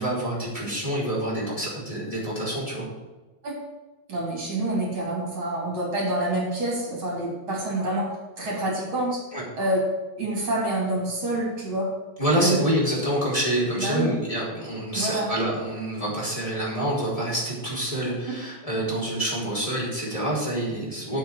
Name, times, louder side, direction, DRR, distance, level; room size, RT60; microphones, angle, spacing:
voice 1, 0.0-2.9 9.3-9.4 12.2-21.2, right 1 dB, 10° left, -6 dB, 4.1 m, -27 dB
voice 2, 4.1-8.1 8.4-9.2 9.6-9.8 10.2-11.9 12.4-12.6 13.8-14.2 14.9-15.3, right 1 dB, 30° right, -3 dB, 3.5 m, -27 dB
9.2 x 6.7 x 8.7 m, 1.2 s
omnidirectional pair, 4.8 m